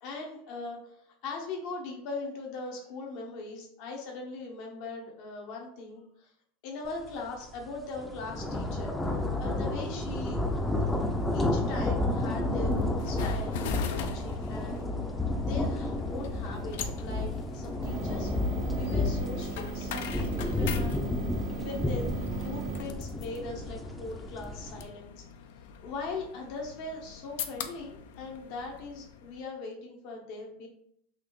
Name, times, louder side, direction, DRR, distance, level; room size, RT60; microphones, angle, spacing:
voice 1, 0.0-6.3 6.6-9.0 9.4-10.4 10.8-10.9 11.3-14.8 15.4-18.5 18.7-21.1 21.5-25.2 25.6-30.7, left 3 dB, 60° left, 1 dB, 0.9 m, -40 dB
sound 1, 7.0-7.2 7.6-24.8, left 2 dB, 10° left, 0.4 m, -31 dB
sound 2, 10.4-29.4, left 7 dB, 75° left, 0.4 m, -43 dB
sound 3, 17.8-22.8, right 9 dB, 85° right, 0.6 m, -39 dB
4.0 x 2.5 x 3.1 m, 0.68 s
supercardioid pair, 120°, 0 cm